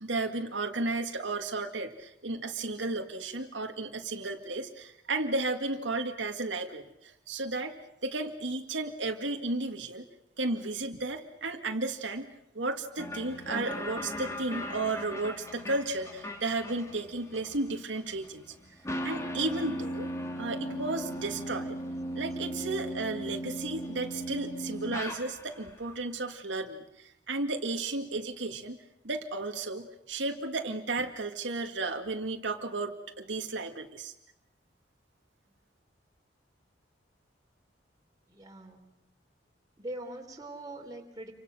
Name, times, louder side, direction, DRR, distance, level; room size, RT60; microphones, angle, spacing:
voice 1, 0.0-7.8 8.0-10.1 10.4-18.5 19.0-20.1 20.4-21.8 22.2-28.8 29.0-34.1, right 2 dB, 85° right, 4 dB, 2.1 m, -33 dB
sound 1, 13.0-25.7, equal, 15° left, 2.6 m, -38 dB
voice 2, 38.3-38.8 39.8-41.3, right 1 dB, 20° right, 2 dB, 3.6 m, -42 dB
29.5 x 25.0 x 6.3 m, 0.80 s
head